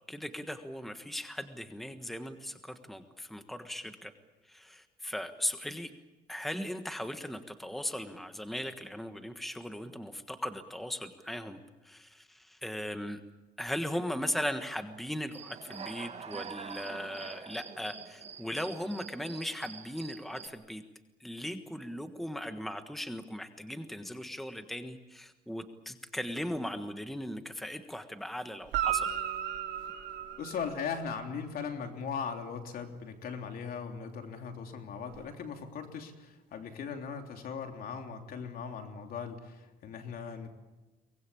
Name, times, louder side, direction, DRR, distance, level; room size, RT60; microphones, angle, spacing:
voice 1, 0.1-4.1 4.4-5.9 6.3-13.2 13.6-20.8 21.2-29.1, left 1 dB, ahead, 8 dB, 1.4 m, -38 dB
Human voice / Cricket, 15.3-20.5, right 6 dB, 40° right, 1.8 m, -45 dB
Guitar, 28.7-31.2 35.1-35.2, right 10 dB, 85° right, 3.3 m, -34 dB
voice 2, 30.4-40.5, left 6 dB, 60° left, 4 dB, 3.3 m, -39 dB
24.0 x 20.0 x 8.6 m, 1.1 s
cardioid pair, 110°, 17 cm